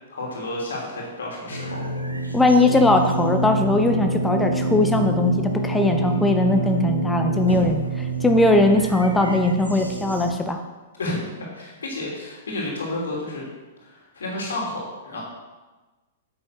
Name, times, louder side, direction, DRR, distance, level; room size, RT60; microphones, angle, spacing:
voice 1, 0.1-1.9 2.2-2.4 11.0-13.4 13.8-15.2, left 2 dB, 70° left, -3 dB, 3.0 m, -31 dB
sound 1, 1.5-10.3, right 2 dB, 90° right, 1.2 m, -26 dB
voice 2, 2.3-10.6, left 2 dB, 10° left, 5 dB, 0.9 m, -20 dB
8.7 x 7.9 x 5.8 m, 1.2 s
figure-of-eight pair, 105°, 0 cm